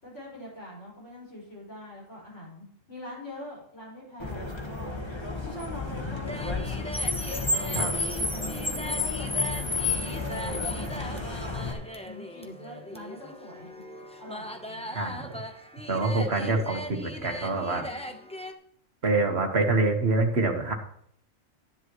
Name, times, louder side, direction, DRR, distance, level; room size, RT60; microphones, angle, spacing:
voice 1, 0.0-5.0 5.4-6.6 8.0-11.7 12.0-15.1 17.5-18.2, left 1 dB, 65° left, -6 dB, 5.9 m, -44 dB
Car, 4.2-11.7, left 3 dB, 20° left, 1.3 m, -31 dB
sound 1, 6.3-18.5, left 1 dB, 5° left, 0.7 m, -40 dB
voice 2, 14.9-15.4 15.9-17.8 19.0-20.7, right 3 dB, 55° right, 4 dB, 1.7 m, -26 dB
13.0 x 10.0 x 3.1 m, 0.65 s
omnidirectional pair, 1.3 m